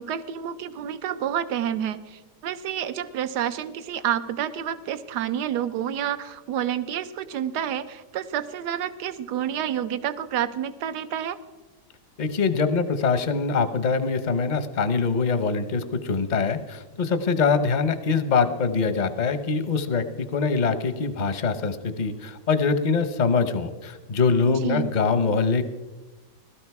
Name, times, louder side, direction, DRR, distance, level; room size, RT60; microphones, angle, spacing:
voice 1, 0.0-11.4 24.4-24.9, right 10 dB, 75° right, 12 dB, 1.3 m, -29 dB
voice 2, 12.2-25.6, left 5 dB, 40° left, 11 dB, 0.7 m, -23 dB
18.0 x 12.5 x 4.7 m, 1.2 s
omnidirectional pair, 1.8 m